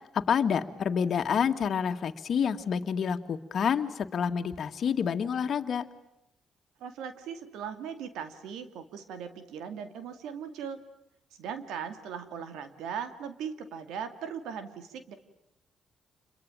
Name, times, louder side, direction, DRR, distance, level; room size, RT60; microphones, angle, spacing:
voice 1, 0.1-5.9, left 7 dB, 55° left, 7 dB, 2.0 m, -28 dB
voice 2, 6.8-10.8 11.4-15.1, right 7 dB, 85° right, 9 dB, 2.4 m, -39 dB
29.0 x 22.5 x 9.0 m, 0.84 s
cardioid pair, 90°, 0 cm